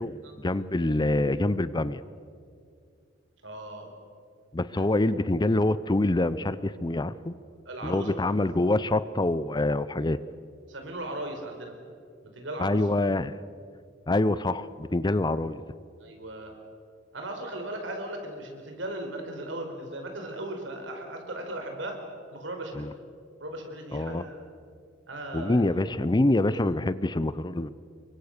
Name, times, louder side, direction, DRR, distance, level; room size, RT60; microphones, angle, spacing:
voice 1, 0.0-2.0 4.5-7.4 7.8-10.2 12.6-13.3 14.1-15.6 22.7-22.9 23.9-24.2 25.3-27.7, left 2 dB, 20° left, 16 dB, 0.6 m, -26 dB
voice 2, 3.4-3.9 4.7-4.9 7.7-8.1 10.7-11.7 12.2-12.8 16.0-16.5 17.1-22.0 22.3-22.9 23.4-24.4 25.1-25.8, right 1 dB, 70° right, 4 dB, 4.7 m, -37 dB
28.0 x 23.5 x 6.7 m, 2.2 s
head